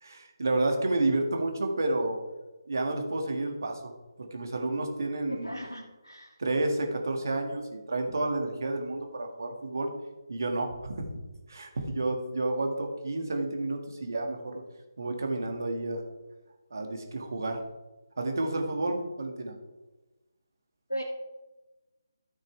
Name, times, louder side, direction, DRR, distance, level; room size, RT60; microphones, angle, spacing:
voice 1, 0.0-2.2 2.7-3.9 4.2-5.5 6.4-9.9 10.3-11.2 11.5-14.6 15.0-16.0 16.7-17.6 18.2-19.5, right 2 dB, 55° right, 3 dB, 1.8 m, -30 dB
voice 2, 5.3-6.4 20.9-21.0, equal, 85° left, -3 dB, 1.7 m, -37 dB
14.0 x 6.4 x 3.3 m, 1.1 s
figure-of-eight pair, 150°, 2 cm